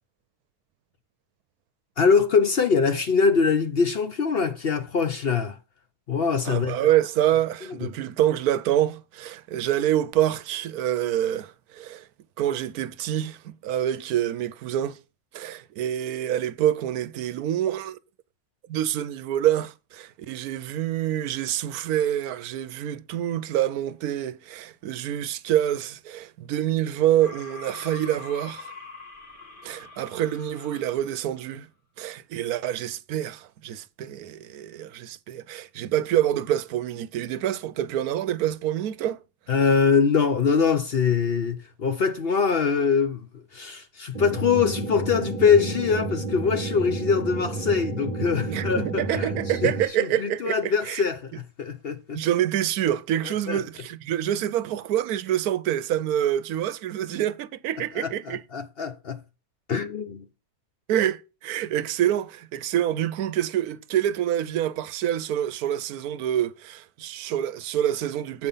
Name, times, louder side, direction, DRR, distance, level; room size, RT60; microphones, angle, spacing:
voice 1, 2.0-5.6 6.1-6.8 7.7-7.9 39.5-49.7 50.0-52.2 53.2-53.6 57.9-59.2 59.7-60.2, left 5 dB, 50° left, 0.7 m, -23 dB
voice 2, 6.5-12.0 12.4-15.0 15.3-18.0 18.7-28.7 29.6-31.7 32.0-39.2 48.5-51.0 52.1-58.4 60.9-68.5, right 11 dB, 75° right, 1.1 m, -26 dB
sound 1, 27.2-31.4, left 3 dB, 35° left, 1.7 m, -43 dB
sound 2, 44.1-49.9, right 3 dB, 30° right, 1.0 m, -31 dB
8.0 x 5.4 x 5.5 m
omnidirectional pair, 1.7 m